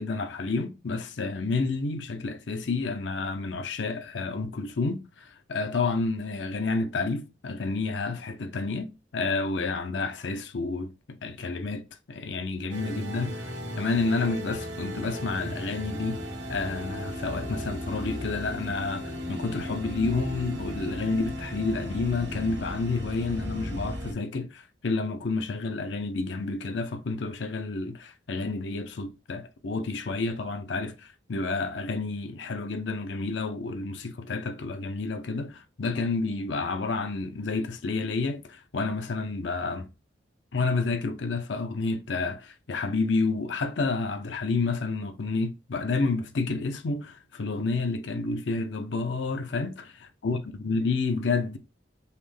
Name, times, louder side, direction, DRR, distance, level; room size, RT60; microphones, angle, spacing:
voice 1, 0.0-16.2 16.5-39.9 40.5-49.7 50.2-51.6, left 3 dB, 75° left, 0.6 m, -30 dB
sound 1, 12.7-24.1, equal, 85° right, 1.3 m, -36 dB
5.6 x 2.1 x 3.2 m
head